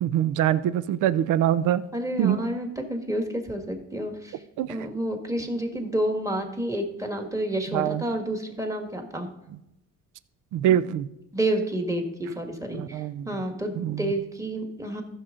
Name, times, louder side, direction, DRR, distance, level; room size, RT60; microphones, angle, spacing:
voice 1, 0.0-1.8 2.2-2.4 4.6-4.8 7.7-8.0 10.5-11.1 12.7-13.3 13.8-14.1, right 11 dB, 80° right, 16 dB, 0.5 m, -24 dB
voice 2, 1.9-4.4 4.7-9.3 11.3-15.0, right 1 dB, 10° right, 4 dB, 1.7 m, -29 dB
14.0 x 6.4 x 3.8 m, 0.88 s
cardioid pair, 90°, 30 cm